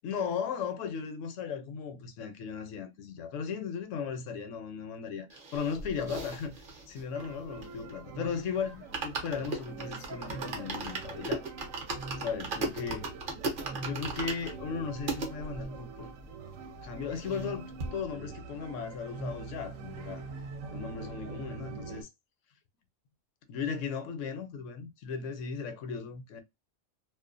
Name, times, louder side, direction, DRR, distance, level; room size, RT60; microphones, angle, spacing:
voice 1, 0.0-6.6 6.9-11.4 12.2-13.1 13.8-16.1 16.8-20.2 20.7-22.1 23.5-26.4, left 6 dB, 75° left, 0.9 m, -36 dB
sound 1, 5.3-8.1 8.4-8.5 8.8-15.3 15.9-16.0 16.1-16.2 16.5-17.5 17.8-17.9, right 3 dB, 50° right, 0.7 m, -37 dB
sound 2, 7.1-22.0, right 4 dB, 75° right, 0.9 m, -44 dB
2.4 x 2.1 x 2.4 m
omnidirectional pair, 1.4 m